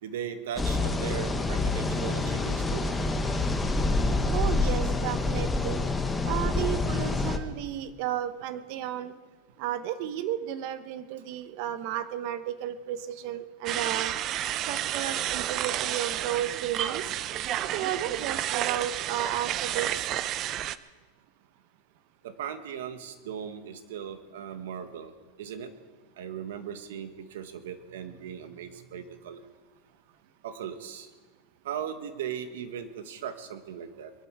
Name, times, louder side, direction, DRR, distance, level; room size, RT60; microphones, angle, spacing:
voice 1, 0.0-2.8 22.2-25.1 25.4-25.7 26.2-29.4 30.4-31.1 31.6-34.1, right 8 dB, 85° right, 8 dB, 1.6 m, -38 dB
sound 1, 0.6-7.4, left 2 dB, 10° left, 1.1 m, -27 dB
voice 2, 4.3-5.8 6.2-9.1 9.6-14.1 14.6-17.0 17.7-20.1, right 11 dB, 55° right, 12 dB, 1.0 m, -33 dB
sound 2, 13.7-20.8, right 12 dB, 40° right, 0.5 m, -31 dB
22.5 x 12.0 x 4.8 m, 1.3 s
supercardioid pair, 140°, 0 cm